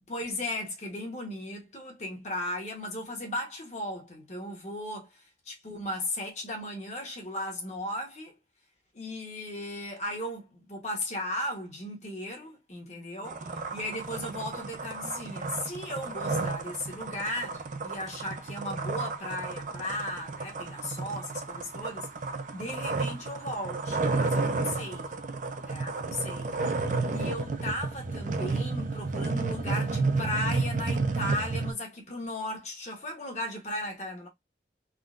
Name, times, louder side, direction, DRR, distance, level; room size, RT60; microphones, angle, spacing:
voice 1, 0.1-5.2 5.5-8.4 8.9-22.1 22.5-25.1 25.6-26.5 27.1-34.3, left 1 dB, 40° left, 1.1 m, -36 dB
sound 1, 13.2-31.7, right 3 dB, 45° right, 0.4 m, -32 dB
3.6 x 2.2 x 2.4 m
head